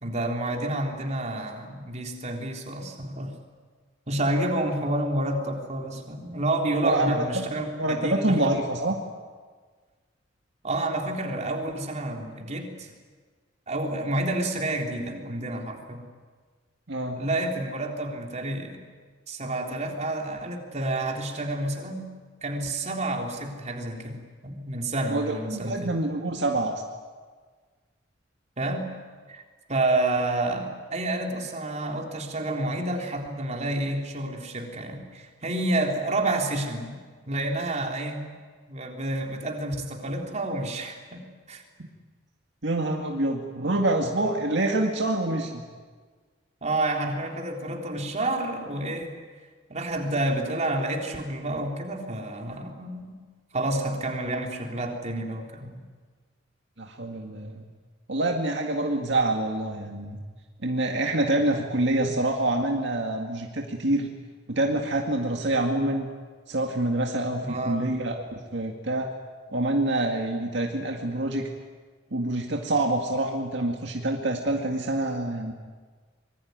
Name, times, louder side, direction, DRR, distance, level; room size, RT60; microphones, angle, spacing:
voice 1, 0.0-3.3 4.1-8.5 10.6-12.9 13.7-16.0 17.1-18.8 19.3-22.1 22.4-25.9 28.6-28.9 29.3-29.4 29.7-38.3 38.7-41.6 46.6-49.2 49.7-53.2 53.5-55.9 62.0-62.1 67.4-67.9, right 2 dB, 35° right, 2 dB, 3.7 m, -29 dB
voice 2, 6.8-7.4 7.8-9.0 16.9-17.2 25.1-26.8 41.8-41.9 42.6-45.6 56.8-57.7 58.1-60.2 60.6-64.1 64.5-66.1 66.5-68.2 68.5-69.1 69.5-71.5 72.1-75.5, right 2 dB, 65° right, 2 dB, 2.1 m, -26 dB
25.5 x 22.0 x 9.5 m, 1.5 s
head